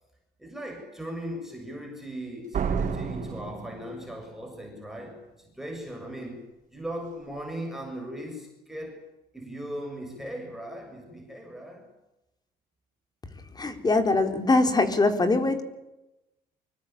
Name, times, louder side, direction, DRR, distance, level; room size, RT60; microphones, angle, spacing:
voice 1, 0.4-9.0 9.3-11.9, equal, ahead, 7.3 m, -38 dB
Slam, 2.5-4.4, right 6 dB, 50° right, 4.9 m, -30 dB
voice 2, 13.6-15.6, left 3 dB, 25° left, 4.1 m, -22 dB
26.0 x 24.0 x 9.0 m
cardioid pair, 110°, 17 cm